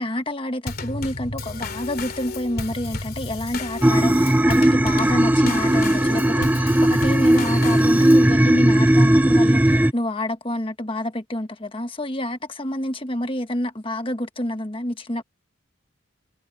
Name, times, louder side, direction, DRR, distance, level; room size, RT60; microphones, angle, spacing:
voice 1, 0.0-15.3, left 1 dB, 25° left, 1.4 m, -28 dB
Drum kit / Snare drum / Bass drum, 0.7-8.3, left 2 dB, 50° left, 3.0 m, -32 dB
sound 1, 3.8-9.9, right 1 dB, 10° right, 0.4 m, -17 dB
head